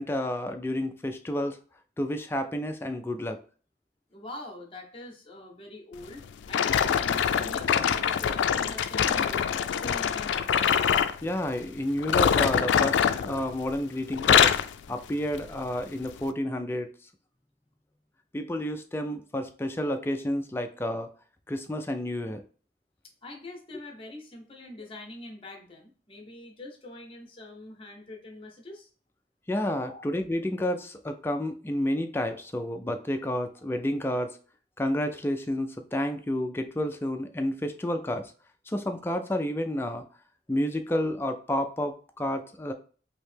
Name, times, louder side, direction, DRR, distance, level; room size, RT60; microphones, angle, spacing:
voice 1, 0.0-1.6 2.0-3.4 11.2-14.6 14.9-16.9 18.3-21.1 21.5-22.4 29.5-34.4 34.8-38.3 38.7-40.0 40.5-42.7, left 1 dB, 15° left, 6 dB, 0.3 m, -30 dB
voice 2, 4.1-10.7 23.2-28.9 29.8-30.0, left 1 dB, 30° left, 1 dB, 0.8 m, -44 dB
sound 1, 6.5-11.2 12.0-13.8 14.1-14.7 15.3-15.5 16.2-16.3, left 8 dB, 90° left, 0.3 m, -24 dB
3.1 x 2.7 x 3.3 m, 0.40 s
head